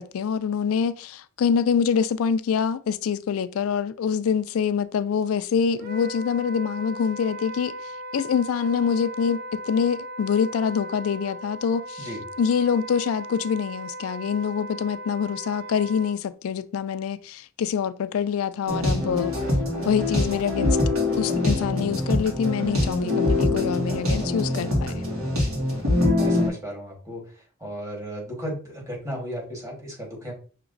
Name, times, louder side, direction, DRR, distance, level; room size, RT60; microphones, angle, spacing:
voice 1, 0.0-7.7 8.1-12.1 12.4-19.4 19.8-20.8 21.2-25.0, left 7 dB, 80° left, 0.3 m, -25 dB
Wind instrument woodwind instrument, 5.8-16.2, right 1 dB, 45° right, 0.5 m, -38 dB
sound 1, 18.7-26.5, left 2 dB, 90° right, 1.7 m, -24 dB
voice 2, 26.1-27.2 27.6-30.3, equal, 15° right, 1.4 m, -35 dB
5.9 x 2.9 x 2.6 m
head